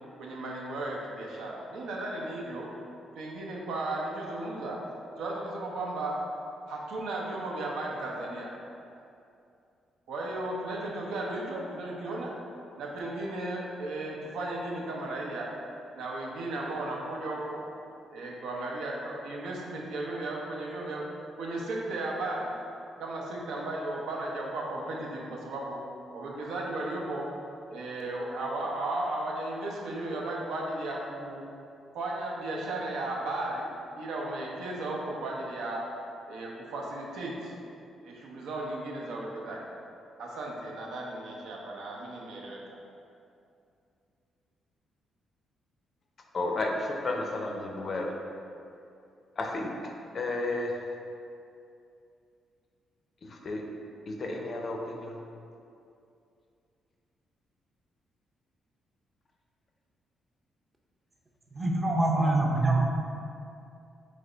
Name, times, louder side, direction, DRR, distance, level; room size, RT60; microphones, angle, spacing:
voice 1, 0.2-2.7 3.1-4.8 5.2-6.2 6.7-8.5 10.1-12.3 12.8-15.5 15.9-17.6 18.1-21.1 21.4-22.6 23.0-25.8 26.1-27.3 27.7-31.4 31.9-33.7 34.0-35.9 36.3-37.5 38.0-39.6 40.2-42.8, right 2 dB, 90° right, -2 dB, 0.6 m, -35 dB
voice 2, 46.3-48.1 49.4-49.7 50.1-50.8 53.4-53.6 54.1-55.1, left 2 dB, 40° left, 1 dB, 0.5 m, -32 dB
voice 3, 61.6-62.9, right 2 dB, 20° right, -1 dB, 0.5 m, -24 dB
3.3 x 3.1 x 3.8 m, 2.6 s
cardioid pair, 125°, 0 cm